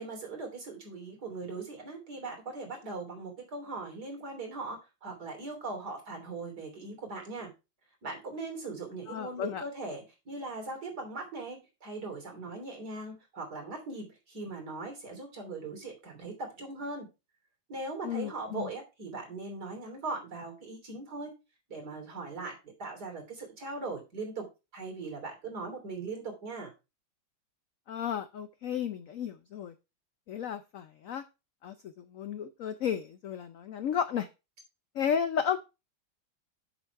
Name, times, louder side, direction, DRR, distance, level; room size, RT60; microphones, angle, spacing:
voice 1, 0.0-7.5 8.0-17.1 17.7-21.3 21.7-24.5 24.7-26.7, right 3 dB, 55° right, 3 dB, 3.7 m, -40 dB
voice 2, 9.1-9.6 18.0-18.7 27.9-29.7 30.3-31.2 31.6-31.7 32.1-34.3 34.9-35.6, left 8 dB, 80° left, 11 dB, 0.7 m, -33 dB
7.8 x 6.2 x 4.6 m, 0.27 s
omnidirectional pair, 2.1 m